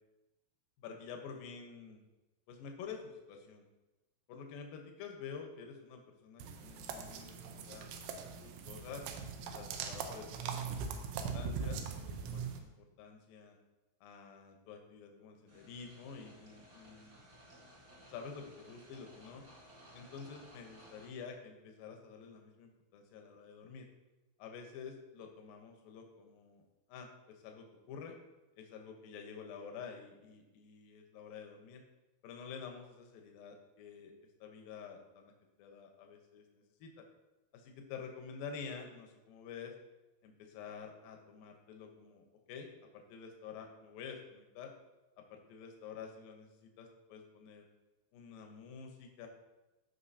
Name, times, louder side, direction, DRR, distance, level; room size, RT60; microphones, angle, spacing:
voice 1, 0.8-2.0 2.5-3.7 4.3-7.9 8.4-9.0 9.4-10.6 10.9-13.6 14.0-17.2 18.1-19.5 19.9-23.9 24.4-26.6 26.9-28.2 28.6-31.8 32.2-34.1 34.4-35.3 35.6-37.1 37.5-39.7 40.2-42.7 42.9-44.7 45.2-47.7 48.1-49.3, left 6 dB, 75° left, 3 dB, 2.2 m, -49 dB
sound 1, 6.4-12.6, right 5 dB, 85° right, 3.1 m, -41 dB
sound 2, 15.5-21.1, equal, 50° right, 1.2 m, -58 dB
15.0 x 5.4 x 2.8 m, 1.1 s
omnidirectional pair, 5.2 m